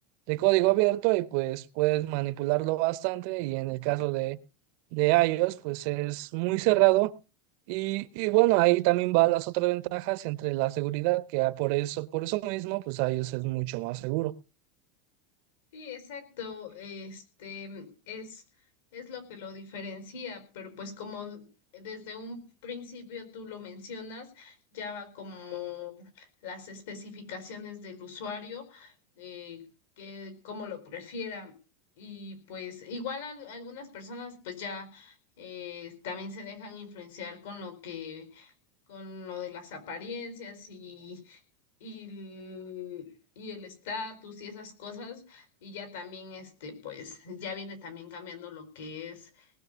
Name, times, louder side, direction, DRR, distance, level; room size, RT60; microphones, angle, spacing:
voice 1, 0.3-4.4 4.9-7.1 7.7-14.3, right 21 dB, 50° right, 0.6 m, -26 dB
voice 2, 15.7-18.4 18.9-21.4 21.7-29.6 30.0-31.5 32.0-38.5 38.9-41.4 41.8-43.1 43.4-49.5, left 5 dB, 75° left, 4.5 m, -41 dB
19.0 x 6.5 x 6.7 m
supercardioid pair, 170°, 0 cm